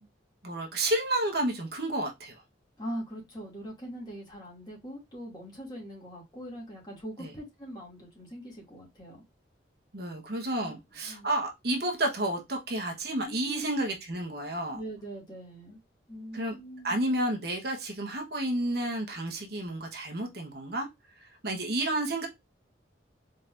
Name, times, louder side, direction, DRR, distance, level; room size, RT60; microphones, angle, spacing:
voice 1, 0.4-2.4 7.2-7.3 9.9-14.8 16.3-16.6 16.8-20.9 21.2-22.3, right 1 dB, 55° right, 1.1 m, -31 dB
voice 2, 2.8-9.2 10.6-10.8 11.0-11.3 13.2-13.7 14.7-15.8 16.1-17.0, equal, 25° left, 2.4 m, -42 dB
4.4 x 4.0 x 2.5 m
head